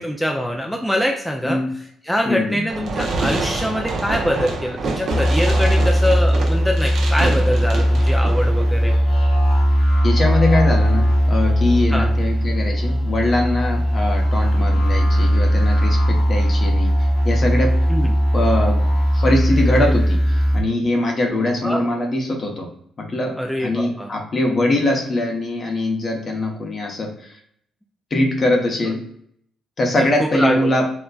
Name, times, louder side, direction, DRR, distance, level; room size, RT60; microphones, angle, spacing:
voice 1, 0.0-1.6 2.1-8.9 11.9-12.1 17.9-18.1 21.6-21.8 23.4-24.1 30.0-30.7, equal, ahead, 1 dB, 0.4 m, -23 dB
voice 2, 2.3-2.6 10.0-17.7 18.3-18.9 19.1-27.4 28.1-29.1 29.8-30.8, left 1 dB, 40° left, 1 dB, 0.8 m, -22 dB
Fireworks, 2.7-8.7, right 3 dB, 65° right, 0.7 m, -27 dB
sound 1, 5.1-20.6, equal, 70° left, 1.3 m, -18 dB
3.9 x 2.1 x 2.3 m, 0.67 s
cardioid pair, 90°, 0 cm